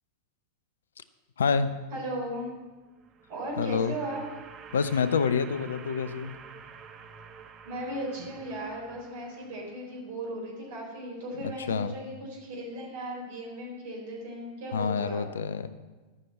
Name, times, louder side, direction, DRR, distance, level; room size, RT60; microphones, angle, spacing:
voice 1, 1.4-1.7 3.6-3.9 4.7-6.3 11.7-11.9 14.7-15.7, left 5 dB, 65° left, 14 dB, 0.5 m, -27 dB
voice 2, 1.9-2.5 3.3-4.2 7.6-15.3, right 1 dB, 55° right, -1 dB, 4.1 m, -37 dB
sound 1, 2.8-10.0, right 6 dB, 30° right, 0.9 m, -49 dB
12.5 x 6.1 x 7.5 m, 1.3 s
figure-of-eight pair, 90°, 0 cm